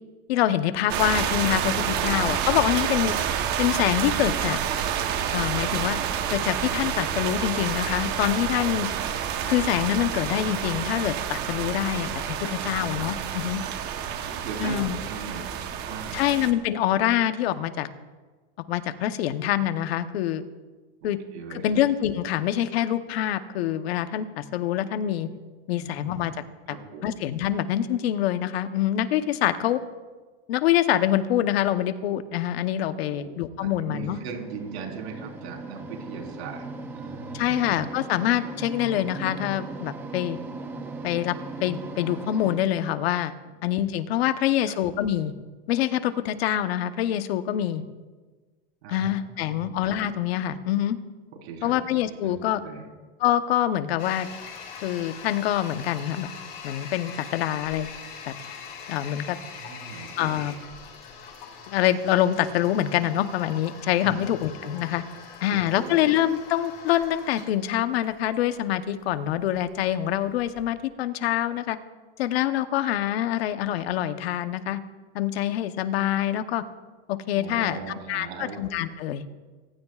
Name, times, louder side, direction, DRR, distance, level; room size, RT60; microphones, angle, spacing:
voice 1, 0.3-3.1 3.6-4.6 5.3-6.0 6.3-8.9 9.5-12.1 12.5-13.6 14.6-15.0 16.1-17.9 18.7-20.4 21.0-21.2 21.6-25.3 25.7-26.4 26.7-26.8 27.0-29.8 30.5-34.2 37.3-40.4 41.0-41.3 41.6-43.3 43.6-45.3 45.7-47.8 48.9-51.0 51.6-52.6 53.2-54.3 54.8-56.3 56.6-57.9 58.3-58.4 58.9-59.4 60.2-60.5 61.7-65.0 65.4-71.8 72.2-74.8 75.1-76.6 77.1-79.3, left 12 dB, 70° left, 10 dB, 1.0 m, -25 dB
sound 1, 0.9-16.5, right 8 dB, 30° right, 1.0 m, -28 dB
voice 2, 12.4-12.8 14.1-14.8 15.0-16.2 21.0-21.7 25.7-26.3 26.7-27.1 32.8-33.3 33.6-36.7 36.9-37.6 44.5-44.8 48.8-49.7 51.4-51.7 52.1-52.3 52.6-52.8 59.6-60.4 64.0-64.2 64.6-64.7 65.7-66.0 77.3-78.6, right 5 dB, 85° right, 1 dB, 4.1 m, -39 dB
sound 2, 34.0-42.6, right 3 dB, 5° right, 0.4 m, -38 dB
Toilet flush, 54.0-70.7, left 6 dB, 30° left, 2.6 m, -43 dB
24.5 x 15.5 x 2.4 m, 1.3 s
supercardioid pair, 175°, 31 cm